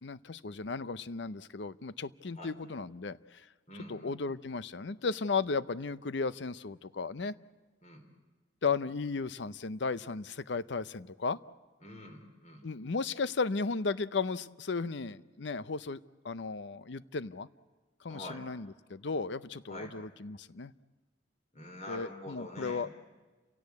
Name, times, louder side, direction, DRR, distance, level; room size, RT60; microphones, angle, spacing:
voice 1, 0.0-3.5 3.9-7.3 8.6-11.4 12.6-17.5 18.0-20.7 21.9-22.9, left 4 dB, 65° left, 16 dB, 0.7 m, -35 dB
voice 2, 3.7-4.2 7.8-8.0 11.8-12.7 18.1-18.4 19.7-19.9 21.5-22.9, left 1 dB, 40° left, 4 dB, 4.1 m, -45 dB
30.0 x 17.0 x 8.4 m, 1.3 s
head